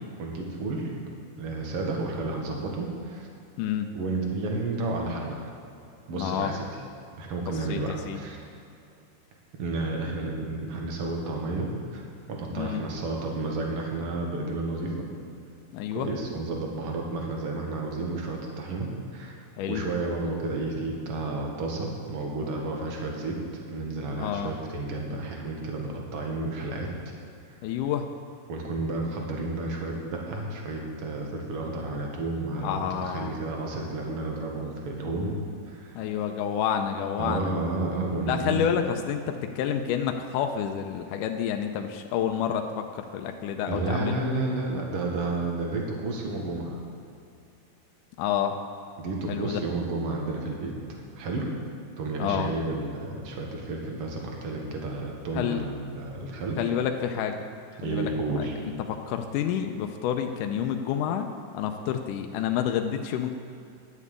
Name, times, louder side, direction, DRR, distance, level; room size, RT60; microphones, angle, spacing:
voice 1, 0.2-0.9 1.4-3.3 3.9-5.4 6.1-6.7 7.2-8.4 9.6-12.0 12.3-15.1 15.9-19.4 19.7-23.4 23.7-26.9 28.5-35.4 35.7-36.0 37.2-38.6 43.7-46.8 49.0-50.7 51.2-51.5 52.0-56.6 57.8-58.5, right 2 dB, 50° right, 0 dB, 2.2 m, -31 dB
voice 2, 3.6-3.9 6.1-6.5 7.7-8.2 12.5-12.9 15.7-16.1 19.6-19.9 24.1-24.5 27.6-28.1 32.6-33.3 36.0-37.5 38.3-44.2 48.2-48.6 49.3-49.6 52.2-52.5 55.3-55.7 56.6-57.4 57.8-58.1 58.4-61.3 61.5-63.3, left 9 dB, 85° left, 5 dB, 2.2 m, -29 dB
11.0 x 7.4 x 8.2 m, 2.6 s
omnidirectional pair, 3.8 m